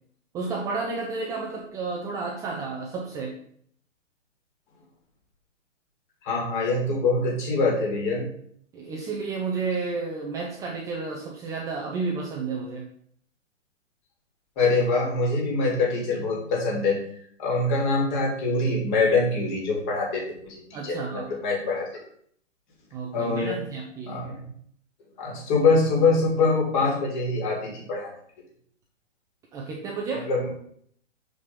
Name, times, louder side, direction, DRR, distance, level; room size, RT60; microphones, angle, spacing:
voice 1, 0.3-3.4 8.7-12.9 20.7-21.4 22.9-24.2 29.5-30.3, right 4 dB, 10° right, -2 dB, 0.5 m, -31 dB
voice 2, 6.2-8.3 14.6-17.0 17.4-21.9 23.1-23.6 24.1-24.4 25.2-28.1 30.3-30.5, left 3 dB, 40° left, -2 dB, 3.1 m, -24 dB
6.3 x 5.6 x 5.2 m, 0.63 s
figure-of-eight pair, 125°, 38 cm